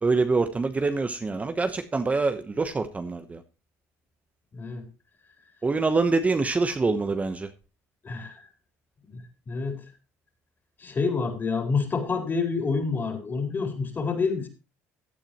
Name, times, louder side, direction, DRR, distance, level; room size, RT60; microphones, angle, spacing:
voice 1, 0.0-3.4 5.6-7.5, right 3 dB, 20° right, 8 dB, 1.0 m, -25 dB
voice 2, 4.5-4.8 8.0-8.4 9.1-9.2 9.5-9.8 10.8-14.5, left 4 dB, 35° left, 4 dB, 4.2 m, -28 dB
16.0 x 9.0 x 3.1 m, 0.30 s
supercardioid pair, 90°, 6 cm